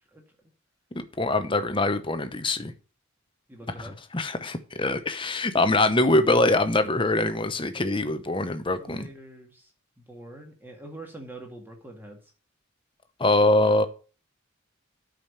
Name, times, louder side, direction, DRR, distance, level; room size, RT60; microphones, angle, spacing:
voice 1, 1.2-2.7 3.8-9.1 13.2-13.8, left 2 dB, 25° left, 0.8 m, -23 dB
voice 2, 3.5-3.9 8.7-9.7 10.0-12.2, right 2 dB, 10° right, 2.0 m, -44 dB
9.0 x 5.1 x 6.8 m
head